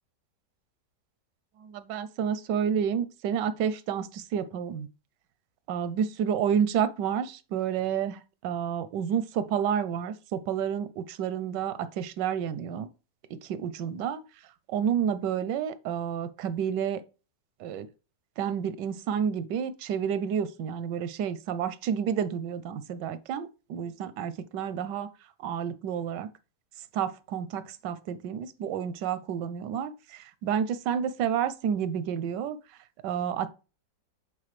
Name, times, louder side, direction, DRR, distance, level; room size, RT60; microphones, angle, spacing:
voice 1, 1.6-4.9 5.7-12.9 13.3-14.2 14.7-17.0 17.6-17.9 18.4-25.1 25.4-26.3 26.9-32.6 33.0-33.5, right 8 dB, 85° right, 1.2 m, -30 dB
7.6 x 3.8 x 3.2 m
omnidirectional pair, 1.8 m